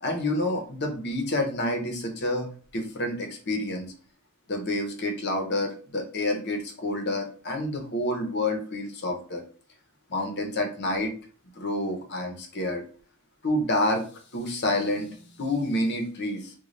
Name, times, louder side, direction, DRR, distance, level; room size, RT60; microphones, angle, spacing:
voice 1, 0.0-2.5 2.7-3.9 4.5-9.4 10.1-11.1 11.6-12.8 13.4-14.0 14.3-16.5, left 1 dB, 50° left, 4 dB, 0.8 m, -28 dB
3.8 x 2.3 x 3.1 m, 0.41 s
head